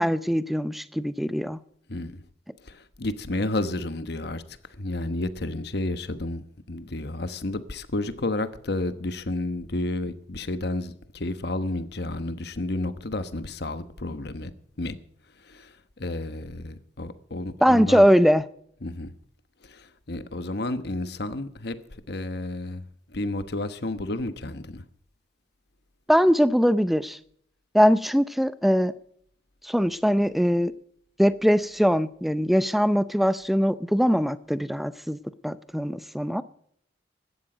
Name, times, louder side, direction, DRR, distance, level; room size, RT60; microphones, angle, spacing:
voice 1, 0.0-1.6 17.6-18.4 26.1-27.2 27.7-28.9 29.6-30.7 31.2-36.4, equal, ahead, 0.5 m, -21 dB
voice 2, 2.6-4.4 4.8-6.4 6.7-14.5 14.8-15.0 15.5-18.1 18.8-19.1 19.6-21.8 22.1-22.8 23.1-24.8, left 2 dB, 60° left, 1.1 m, -31 dB
16.5 x 12.5 x 5.1 m
head